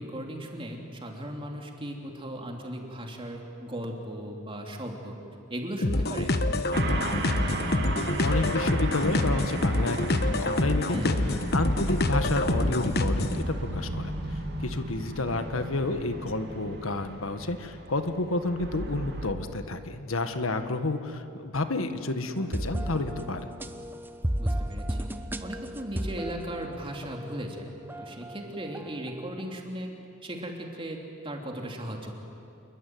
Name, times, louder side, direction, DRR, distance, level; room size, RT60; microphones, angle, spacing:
voice 1, 0.0-5.2 5.5-6.4 10.9-11.3 24.4-25.1 25.4-27.7 28.0-29.9 30.2-32.1, equal, 25° right, 1 dB, 3.3 m, -37 dB
sound 1, 5.8-13.4, left 1 dB, 50° left, 1.2 m, -26 dB
sound 2, 6.7-19.3, right 1 dB, 55° right, 2.4 m, -35 dB
voice 2, 8.2-11.2 11.5-14.1 14.6-23.5, left 2 dB, 75° left, 8 dB, 1.6 m, -30 dB
sound 3, 22.4-27.5 27.9-29.4, right 1 dB, 10° right, 0.9 m, -34 dB
28.0 x 22.0 x 9.4 m, 2.8 s
head